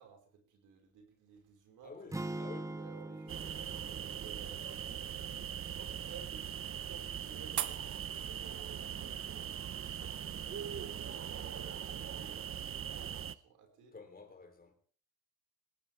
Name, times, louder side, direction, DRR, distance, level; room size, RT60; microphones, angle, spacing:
voice 1, 0.0-2.1 2.7-3.5 4.1-4.7 5.8-9.6 10.2-14.0, right 7 dB, 85° right, 5.2 m, -55 dB
voice 2, 1.8-2.8 10.7-10.9 13.9-14.7, left 4 dB, 30° left, 3.4 m, -51 dB
sound 1, 2.1-6.3, right 2 dB, 10° right, 0.9 m, -44 dB
sound 2, 2.6-11.1, right 11 dB, 70° right, 1.2 m, -48 dB
sound 3, 3.3-13.4, right 9 dB, 45° right, 0.9 m, -41 dB
18.5 x 17.5 x 3.5 m
cardioid pair, 90°, 30 cm